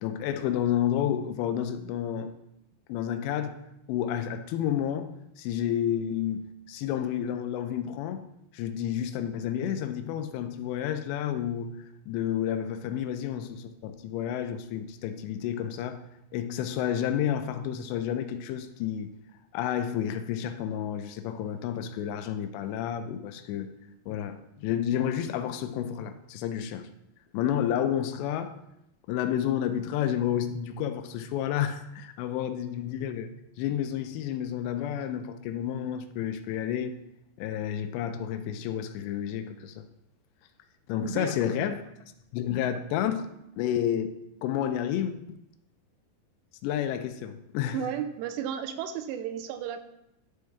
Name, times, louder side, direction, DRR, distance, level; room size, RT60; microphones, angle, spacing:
voice 1, 0.0-2.3 2.9-3.6 3.9-8.2 8.5-11.7 12.1-16.0 16.3-19.1 19.5-23.7 24.1-26.9 27.3-28.6 29.1-33.3 33.6-37.0 37.4-39.7 40.9-41.8 42.3-43.3 43.6-44.1 44.4-45.4 46.6-47.8, left 10 dB, 85° left, 9 dB, 2.8 m, -30 dB
voice 2, 41.0-41.7 47.7-49.8, right 9 dB, 85° right, 8 dB, 2.7 m, -34 dB
11.0 x 4.7 x 3.4 m, 0.83 s
omnidirectional pair, 5.0 m